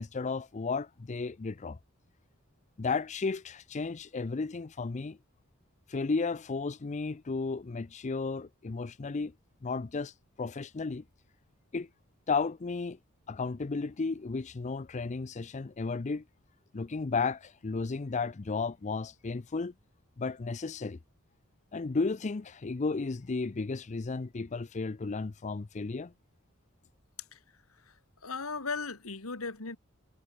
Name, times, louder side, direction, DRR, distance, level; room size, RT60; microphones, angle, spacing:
voice 1, 0.0-1.8 2.8-5.2 5.9-9.3 9.6-11.0 11.7-11.9 12.3-13.0 13.3-16.2 16.7-19.7 20.2-21.0 21.7-26.1, left 4 dB, 35° left, 0.5 m, -33 dB
voice 2, 27.7-29.8, left 4 dB, 90° left, 2.2 m, -38 dB
head